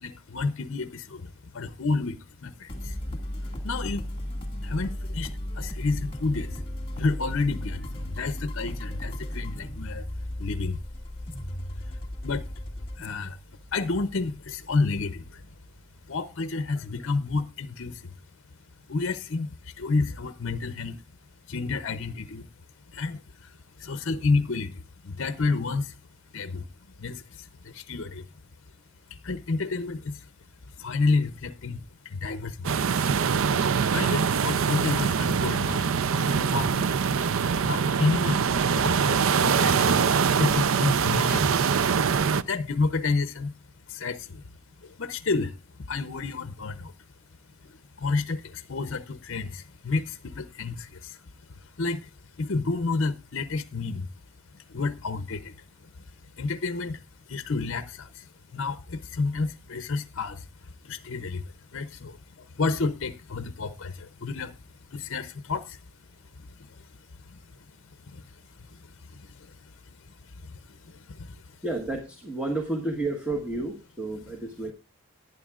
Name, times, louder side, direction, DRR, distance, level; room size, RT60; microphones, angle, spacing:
voice 1, 0.0-4.1 4.6-6.6 6.9-10.1 10.4-10.8 11.8-12.4 13.0-13.4 13.7-15.5 16.1-18.1 18.9-21.0 21.5-22.5 22.9-26.0 26.3-26.7 27.0-28.3 29.1-30.3 30.6-33.1 33.9-37.2 37.6-40.0 40.4-41.7 42.3-43.5 43.9-44.4 44.8-46.9 47.6-52.1 52.4-54.1 54.5-65.8 66.1-71.6, left 3 dB, 60° left, 0.6 m, -31 dB
sound 1, 2.7-16.1, left 1 dB, 25° left, 2.0 m, -36 dB
sound 2, 32.6-42.4, right 6 dB, 65° right, 0.5 m, -23 dB
voice 2, 71.6-74.7, right 2 dB, 5° right, 1.3 m, -31 dB
18.5 x 9.5 x 2.4 m
head